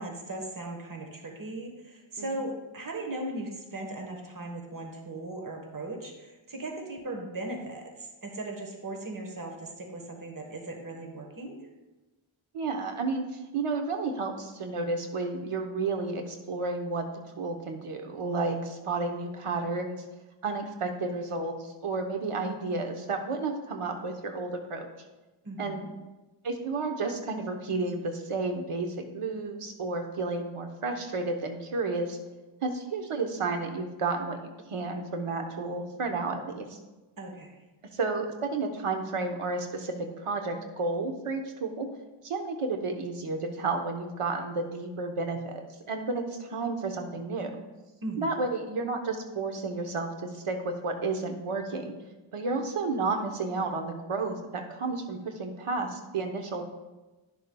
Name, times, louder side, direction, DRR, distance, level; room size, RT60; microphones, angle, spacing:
voice 1, 0.0-11.6 25.4-25.9 37.2-37.6 48.0-48.5, right 2 dB, 40° right, 2 dB, 1.3 m, -38 dB
voice 2, 12.5-17.0 17.4-20.0 20.4-24.9 25.6-25.8 26.4-28.9 29.1-32.2 32.6-34.4 34.7-36.8 37.9-41.9 42.2-47.6 48.2-50.1 50.3-51.9 52.3-56.6, right 3 dB, 90° right, 4 dB, 1.1 m, -31 dB
11.0 x 6.8 x 2.3 m, 1.1 s
wide cardioid pair, 65°, 50 cm